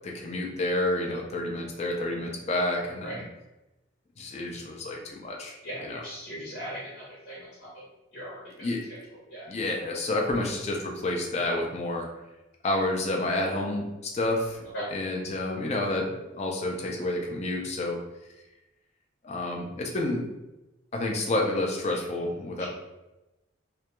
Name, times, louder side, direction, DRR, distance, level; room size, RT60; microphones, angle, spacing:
voice 1, 0.0-3.2 4.2-5.6 5.8-6.0 8.6-8.9 9.5-12.1 12.6-18.0 19.2-20.3 20.9-22.7, left 2 dB, 35° left, 1 dB, 0.4 m, -29 dB
voice 2, 5.6-7.8 8.1-8.7 9.3-9.5 14.7-14.9, equal, 70° left, -8 dB, 0.9 m, -39 dB
2.2 x 2.1 x 2.9 m, 0.98 s
head